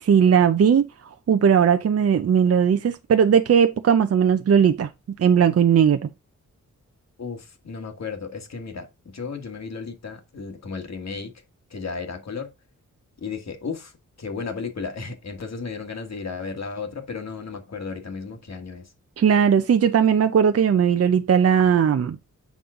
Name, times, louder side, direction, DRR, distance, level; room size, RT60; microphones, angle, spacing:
voice 1, 0.0-0.9 1.3-4.9 5.2-6.1 19.2-22.3, right 7 dB, 50° right, 0.5 m, -18 dB
voice 2, 7.2-11.3 11.7-12.5 13.2-13.9 14.2-18.9, left 5 dB, 60° left, 1.6 m, -34 dB
7.4 x 5.4 x 3.7 m
wide cardioid pair, 155°, 30 cm